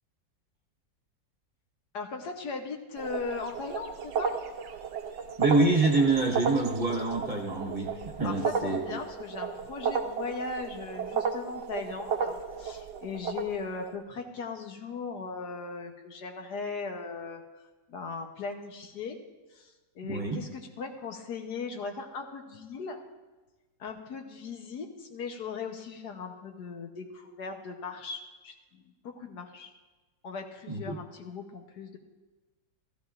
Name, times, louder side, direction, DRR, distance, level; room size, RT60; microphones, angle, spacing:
voice 1, 1.9-4.3 8.2-17.4 17.9-19.2 19.5-23.0 23.8-29.7 30.2-32.0, left 4 dB, 70° left, 4 dB, 1.4 m, -38 dB
sound 1, 3.0-13.9, right 6 dB, 80° right, 1.5 m, -34 dB
voice 2, 5.4-9.0 20.0-20.5 30.7-31.0, right 3 dB, 30° right, 0 dB, 1.1 m, -26 dB
15.5 x 14.5 x 2.5 m, 1.2 s
omnidirectional pair, 1.9 m